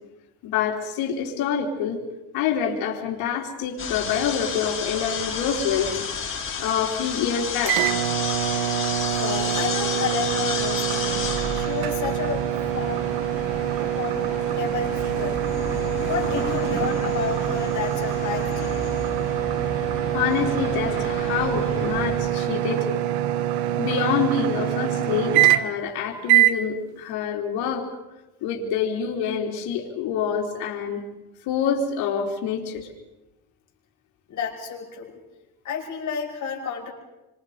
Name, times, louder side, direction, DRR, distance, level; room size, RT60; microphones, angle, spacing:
voice 1, 0.4-2.0 2.3-6.0 6.6-8.0 20.1-22.9 23.8-27.9 28.4-31.0 31.5-32.9, left 7 dB, 85° left, -1 dB, 4.0 m, -26 dB
sound 1, 3.8-22.2, left 5 dB, 35° left, 4.9 m, -32 dB
sound 2, 7.6-25.9 26.3-26.6, right 13 dB, 90° right, 1.2 m, -25 dB
voice 2, 9.2-11.2 11.5-12.5 12.7-13.1 14.0-15.4 16.0-18.8 34.3-35.2 35.6-36.9, left 7 dB, 50° left, 0 dB, 6.3 m, -31 dB
27.5 x 26.0 x 5.2 m, 0.97 s
cardioid pair, 125°, 37 cm